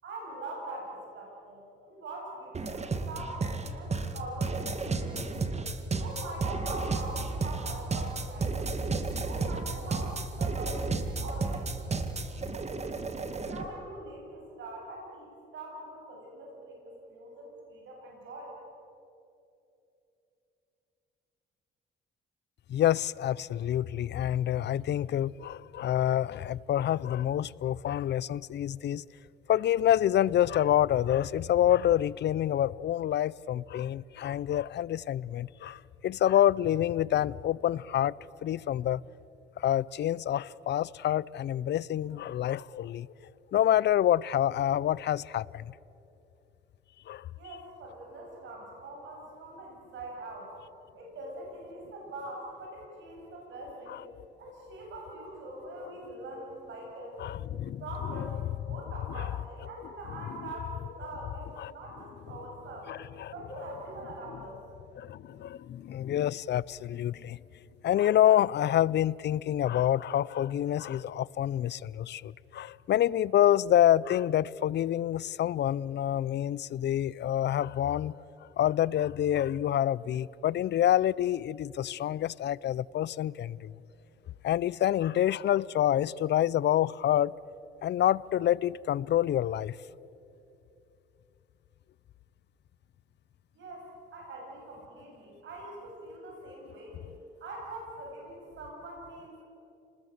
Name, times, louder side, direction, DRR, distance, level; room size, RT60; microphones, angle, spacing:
voice 1, 0.0-5.4 5.9-8.7 9.2-12.7 13.2-18.5 47.4-50.5 50.9-54.0 54.4-57.2 57.8-58.4 58.7-62.9 63.3-64.6 93.5-97.0 97.4-99.5, right 2 dB, 70° right, 7.7 m, -43 dB
sound 1, 2.5-13.7, right 3 dB, 35° right, 2.0 m, -32 dB
voice 2, 22.7-29.0 29.5-39.0 39.6-43.1 43.5-45.7 47.1-47.3 53.9-54.0 55.8-55.9 57.2-57.8 59.1-59.3 61.6-61.7 62.9-63.3 65.0-67.4 67.8-78.2 78.6-83.7 84.4-87.3 87.8-89.8, left 11 dB, 60° left, 0.6 m, -27 dB
29.5 x 20.5 x 8.0 m
cardioid pair, 90°, 20 cm